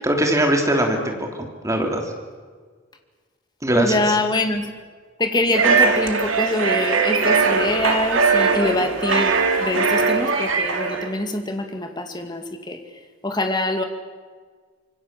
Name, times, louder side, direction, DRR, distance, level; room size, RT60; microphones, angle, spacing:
voice 1, 0.0-2.0 3.6-4.2, right 1 dB, 15° right, 2 dB, 3.2 m, -21 dB
voice 2, 3.7-4.7 5.2-12.8 13.2-13.8, left 2 dB, 20° left, 5 dB, 2.3 m, -24 dB
sound 1, 5.5-11.1, right 4 dB, 90° right, 2.6 m, -20 dB
26.0 x 23.0 x 7.6 m, 1.5 s
head